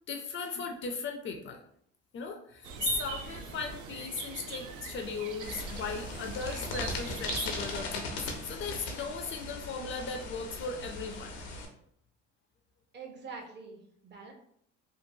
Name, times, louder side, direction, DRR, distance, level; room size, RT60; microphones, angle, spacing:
voice 1, 0.1-1.6 2.1-8.2 8.4-11.3, left 5 dB, 40° left, 4 dB, 0.4 m, -37 dB
sound 1, 2.6-7.8, right 6 dB, 75° right, 0.5 m, -41 dB
sound 2, 5.4-11.7, left 2 dB, 90° left, 0.6 m, -39 dB
voice 2, 12.9-14.3, right 4 dB, 35° right, 2 dB, 0.7 m, -45 dB
2.8 x 2.3 x 2.6 m, 0.67 s
supercardioid pair, 90°, 30 cm